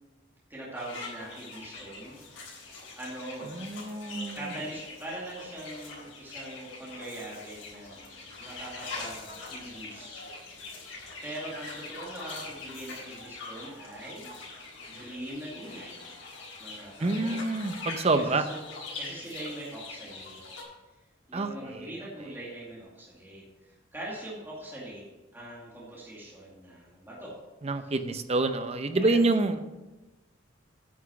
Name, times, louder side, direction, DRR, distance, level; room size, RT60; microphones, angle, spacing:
voice 1, 0.5-2.2 3.0-3.6 4.3-8.0 8.4-10.3 11.2-14.3 14.9-16.1 16.6-17.4 18.3-18.6 19.0-20.4 21.3-25.0 25.3-27.4 27.8-27.9 28.9-29.2, right 1 dB, 10° right, -6 dB, 2.3 m, -42 dB
sound 1, 0.7-20.6, left 3 dB, 75° left, 3.9 m, -43 dB
voice 2, 3.5-4.5 17.0-18.4 21.3-22.1 27.6-29.6, right 2 dB, 30° right, 9 dB, 0.6 m, -27 dB
9.5 x 6.1 x 5.8 m, 1.1 s
head